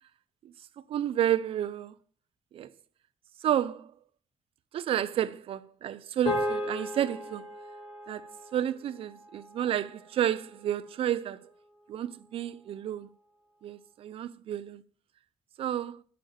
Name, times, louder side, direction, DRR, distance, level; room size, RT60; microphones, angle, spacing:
voice 1, 0.9-1.9 2.5-2.7 3.4-3.9 4.7-7.5 8.1-11.5 11.9-13.1 13.6-14.8 15.6-16.0, right 10 dB, 75° right, 0.8 m, -31 dB
sound 1, 6.3-10.8, left 1 dB, 75° left, 5.9 m, -36 dB
9.3 x 6.9 x 7.4 m
cardioid pair, 120°, 10 cm